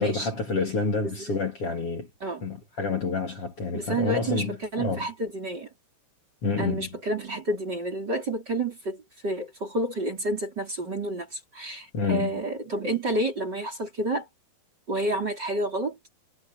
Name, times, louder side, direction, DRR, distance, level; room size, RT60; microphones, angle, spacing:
voice 1, 0.0-2.1 2.4-5.1 6.4-7.0 11.9-12.4, left 4 dB, 35° left, 3.9 m, -28 dB
voice 2, 1.0-1.4 2.2-2.4 3.7-4.4 4.7-5.7 6.6-14.3 14.9-16.0, right 2 dB, 25° right, 4.4 m, -30 dB
omnidirectional pair, 4.8 m